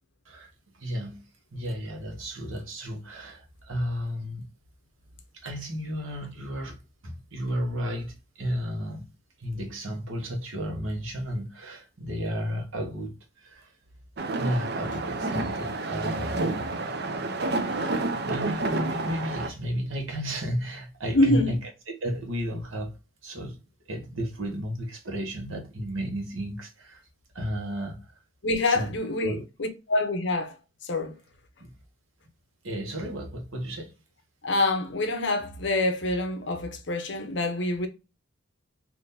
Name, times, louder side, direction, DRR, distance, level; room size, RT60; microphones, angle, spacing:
voice 1, 0.7-1.3 1.5-4.5 5.3-6.8 7.0-9.0 9.4-13.7 14.4-16.7 17.5-21.6 21.9-22.9 23.2-23.6 23.9-27.0 27.3-28.2 28.6-28.9 29.2-29.4 31.6-31.7 32.6-33.9, equal, 85° right, 1.1 m, -33 dB
sound 1, 14.2-19.5, right 2 dB, 50° right, 0.4 m, -29 dB
voice 2, 21.1-21.6 28.4-30.6 30.8-31.2 34.4-37.9, left 2 dB, 60° left, 0.7 m, -26 dB
3.6 x 2.6 x 2.6 m
head